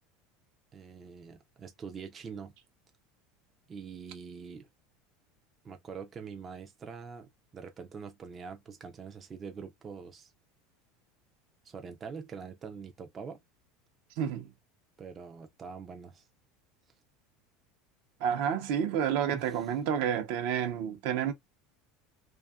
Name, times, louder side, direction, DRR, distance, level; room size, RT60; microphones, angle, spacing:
voice 1, 0.7-2.5 3.7-4.7 5.6-10.3 11.6-13.4 15.0-16.3 19.3-19.7, right 6 dB, 25° right, 0.4 m, -44 dB
voice 2, 14.2-14.5 18.2-21.3, right 8 dB, 65° right, 0.6 m, -30 dB
2.6 x 2.3 x 2.3 m
supercardioid pair, 145°, 0 cm